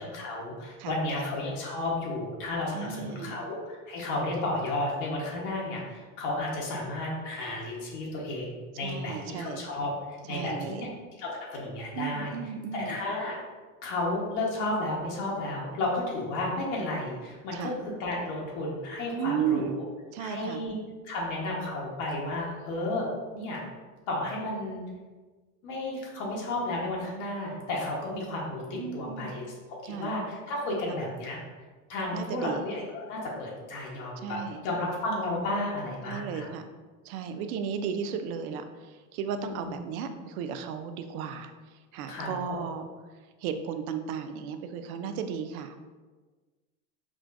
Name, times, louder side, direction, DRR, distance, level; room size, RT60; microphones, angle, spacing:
voice 1, 0.0-10.9 11.2-12.3 12.7-13.4 13.8-17.7 18.0-19.8 20.2-20.8 21.0-23.6 24.1-24.8 25.6-29.5 29.8-31.4 31.9-34.4 34.6-36.5 39.4-39.7 42.1-42.6, left 2 dB, 60° left, -4 dB, 1.1 m, -32 dB
voice 2, 2.7-3.4 8.8-9.6 10.3-10.9 12.0-13.0 17.5-17.7 19.2-19.8 20.1-20.6 28.7-29.4 29.8-30.1 30.9-31.0 32.1-32.6 34.2-34.6 36.1-36.7 37.0-42.8 43.4-45.8, right 7 dB, 70° right, 8 dB, 0.5 m, -34 dB
4.9 x 2.3 x 2.5 m, 1.3 s
supercardioid pair, 105°, 45 cm